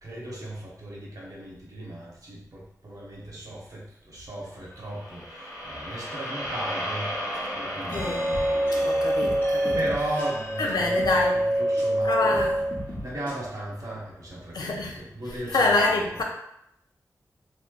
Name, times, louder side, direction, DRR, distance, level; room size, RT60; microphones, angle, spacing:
voice 1, 0.0-12.7 13.0-16.2, right 1 dB, 60° right, 1.1 m, -37 dB
sound 1, 4.7-13.0, equal, 55° left, 1.0 m, -36 dB
voice 2, 7.9-8.3 8.7-9.8 10.6-11.5 12.0-12.6 14.5-15.0 15.5-16.2, left 3 dB, 85° left, 0.5 m, -26 dB
sound 2, 7.9-12.0 12.3-13.4, equal, 30° left, 0.9 m, -38 dB
sound 3, 7.9-12.9, right 1 dB, 30° right, 0.4 m, -26 dB
3.1 x 2.8 x 2.3 m
wide cardioid pair, 85°, 7 cm